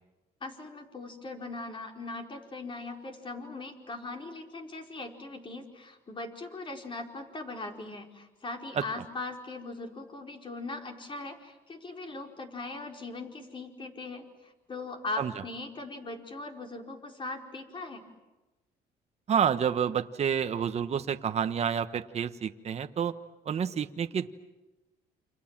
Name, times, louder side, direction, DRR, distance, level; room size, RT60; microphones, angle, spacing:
voice 1, 0.4-18.0, left 3 dB, 30° left, 3 dB, 4.6 m, -40 dB
voice 2, 19.3-23.1 23.4-24.3, right 8 dB, 40° right, 8 dB, 1.3 m, -29 dB
29.0 x 28.0 x 7.5 m, 1.1 s
cardioid pair, 110°, 17 cm